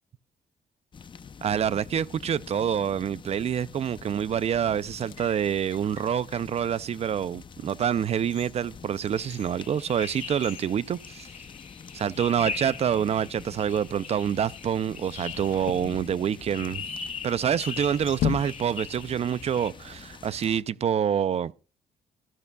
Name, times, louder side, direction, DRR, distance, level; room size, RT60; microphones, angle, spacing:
sound 1, 0.9-20.6, left 6 dB, 35° left, 0.6 m, -46 dB
voice 1, 1.4-11.3 11.9-16.8 17.2-21.5, right 8 dB, 45° right, 0.5 m, -27 dB
sound 2, 4.9-6.6 7.2-7.3 7.9-11.7 12.0-12.1 12.9-13.3 15.3-16.6 17.4-19.0 19.2-19.3, left 13 dB, 80° left, 0.4 m, -38 dB
sound 3, 9.2-19.7, left 6 dB, 50° left, 1.7 m, -41 dB
14.0 x 12.0 x 2.3 m
cardioid pair, 95°, 14 cm